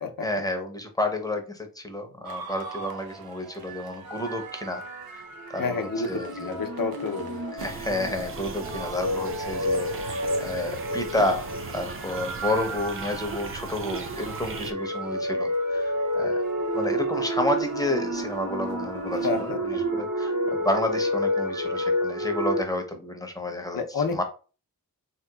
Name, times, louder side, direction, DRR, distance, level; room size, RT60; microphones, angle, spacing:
voice 1, 0.2-4.8 5.1-5.2 5.5-6.5 7.5-16.4 16.7-23.8 24.1-24.2, left 1 dB, 10° left, 4 dB, 0.6 m, -30 dB
sound 1, 2.2-19.5, right 5 dB, 80° right, 0.6 m, -45 dB
sound 2, 3.7-22.6, equal, 65° right, 0.9 m, -30 dB
voice 2, 5.6-7.4 19.2-19.8 23.7-24.2, left 4 dB, 70° left, 6 dB, 0.6 m, -30 dB
sound 3, 7.6-14.7, right 5 dB, 40° right, 0.4 m, -37 dB
3.4 x 2.8 x 2.2 m, 0.35 s
wide cardioid pair, 75°, 36 cm